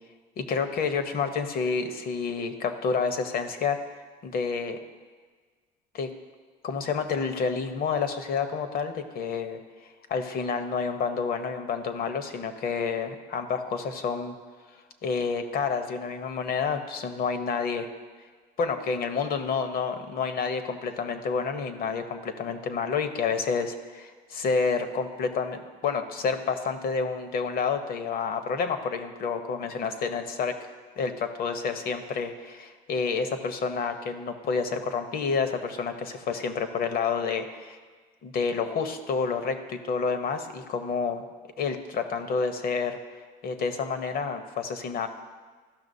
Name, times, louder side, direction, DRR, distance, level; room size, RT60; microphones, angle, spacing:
voice 1, 0.4-3.8 4.2-4.8 5.9-6.1 6.6-14.3 15.0-17.9 18.6-30.6 31.0-37.8 38.2-41.2 41.6-43.0 43.4-45.1, left 5 dB, 55° left, 8 dB, 0.8 m, -29 dB
13.5 x 5.9 x 2.7 m, 1.5 s
cardioid pair, 95°, 18 cm